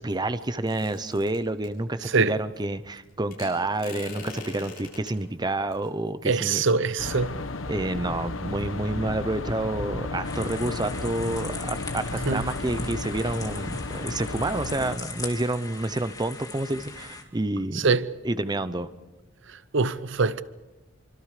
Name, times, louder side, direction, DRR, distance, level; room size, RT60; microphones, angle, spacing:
voice 1, 0.0-6.6 7.7-17.9 18.2-18.9, right 2 dB, 20° right, 0.7 m, -29 dB
sound 1, 0.7-1.7 3.3-5.2 5.7-5.9, left 3 dB, 50° left, 7.9 m, -42 dB
voice 2, 6.2-7.4 12.3-12.4 17.7-18.1 19.7-20.4, right 4 dB, 65° right, 0.7 m, -23 dB
sound 2, 7.0-15.0, left 2 dB, 75° left, 1.1 m, -33 dB
sound 3, 10.2-17.2, left 3 dB, 20° left, 2.4 m, -40 dB
27.5 x 25.0 x 5.0 m
head